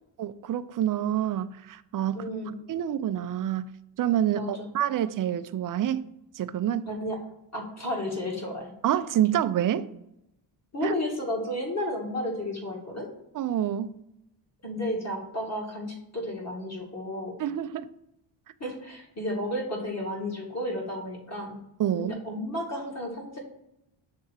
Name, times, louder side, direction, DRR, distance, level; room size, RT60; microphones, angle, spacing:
voice 1, 0.2-2.2 2.7-3.7 4.0-6.1 6.3-6.9 8.8-9.9 10.8-10.9 13.3-14.0 17.4-17.9 21.8-22.2, right 11 dB, 45° right, 0.4 m, -27 dB
voice 2, 2.1-2.6 4.3-4.7 6.9-7.2 7.5-8.7 10.7-13.1 14.6-17.3 18.6-21.6 22.0-23.4, left 1 dB, 35° left, 2.1 m, -32 dB
6.5 x 3.5 x 5.7 m
cardioid pair, 95°, 46 cm